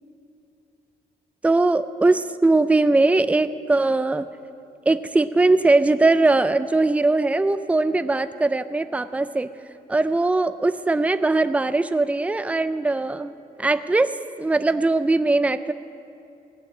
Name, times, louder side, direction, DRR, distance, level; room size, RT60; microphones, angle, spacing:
voice 1, 1.4-4.3 4.9-9.5 9.9-13.3 13.6-15.7, right 2 dB, 10° right, 12 dB, 0.4 m, -20 dB
16.0 x 6.4 x 8.5 m, 2.6 s
cardioid pair, 125°, 16 cm